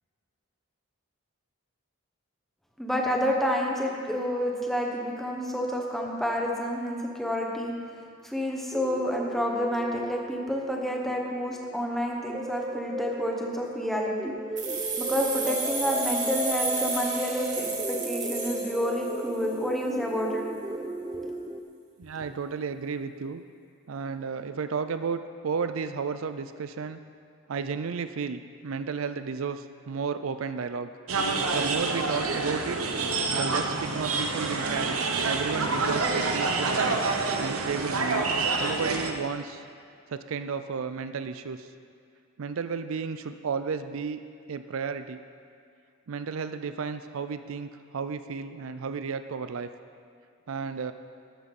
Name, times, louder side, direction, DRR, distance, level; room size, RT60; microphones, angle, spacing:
voice 1, 2.8-7.7 8.2-14.3 15.0-20.4, equal, ahead, -1 dB, 1.3 m, -29 dB
sound 1, 8.7-21.6, right 1 dB, 20° right, 0.5 m, -36 dB
sound 2, 14.6-19.3, right 4 dB, 35° right, 1.8 m, -32 dB
voice 2, 22.0-23.4 23.9-27.0 27.5-30.9 31.5-32.8 33.3-35.0 35.2-37.0 37.4-38.3 38.6-39.7 40.1-41.7 42.4-44.2 44.5-45.2 46.1-49.7 50.5-50.9, right 5 dB, 70° right, 10 dB, 0.4 m, -33 dB
sound 3, 31.1-39.1, right 3 dB, 90° right, 1.0 m, -27 dB
13.0 x 12.5 x 4.2 m, 2.3 s
head